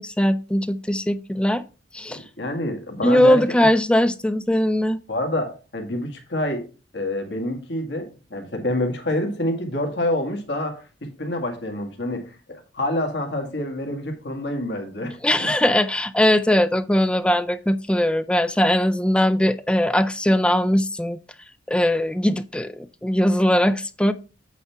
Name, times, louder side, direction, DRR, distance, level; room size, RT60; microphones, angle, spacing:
voice 1, 0.0-1.6 1.9-2.2 3.0-5.0 15.2-21.2 21.7-24.1, left 1 dB, 5° left, 0.3 m, -20 dB
voice 2, 2.1-3.7 5.1-6.6 6.9-10.8 11.2-15.5, left 1 dB, 70° left, 1.8 m, -27 dB
8.3 x 3.4 x 5.7 m
head